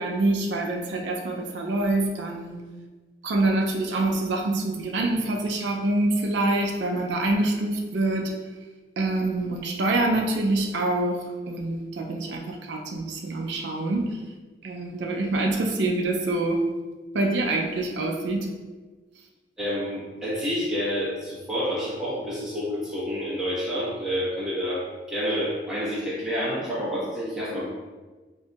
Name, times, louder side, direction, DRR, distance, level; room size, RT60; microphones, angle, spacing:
voice 1, 0.0-2.6 3.2-8.3 9.0-14.2 14.6-16.6 17.1-18.5, right 2 dB, 85° right, 1 dB, 0.4 m, -26 dB
voice 2, 19.6-27.6, equal, 5° right, -10 dB, 1.0 m, -29 dB
4.4 x 2.7 x 2.3 m, 1.3 s
head